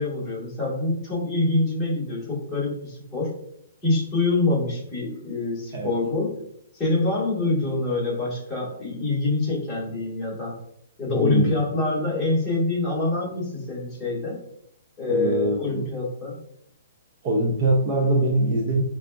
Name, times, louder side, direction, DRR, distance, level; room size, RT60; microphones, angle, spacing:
voice 1, 0.0-3.3 3.8-6.4 6.7-10.5 11.0-14.4 15.0-16.4, left 2 dB, 10° left, -9 dB, 1.5 m, -25 dB
voice 2, 11.1-11.5 15.1-15.8 17.2-18.8, right 2 dB, 30° right, -2 dB, 0.4 m, -23 dB
4.9 x 2.3 x 2.3 m, 0.73 s
hypercardioid pair, 165°, 0 cm